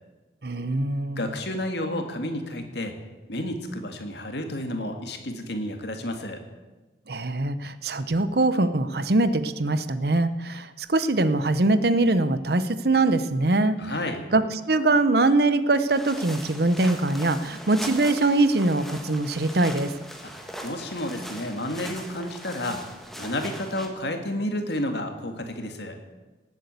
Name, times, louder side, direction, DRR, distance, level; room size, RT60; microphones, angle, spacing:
voice 1, 0.4-1.3 7.1-13.8 14.3-19.9, right 2 dB, 55° right, 13 dB, 0.8 m, -23 dB
voice 2, 1.2-2.9 3.3-6.4 13.8-14.2 20.2-20.3 20.6-22.8 23.2-26.0, left 1 dB, 65° left, 5 dB, 2.1 m, -31 dB
sound 1, 15.9-23.9, equal, ahead, 1.5 m, -40 dB
18.5 x 8.4 x 8.3 m, 1.2 s
head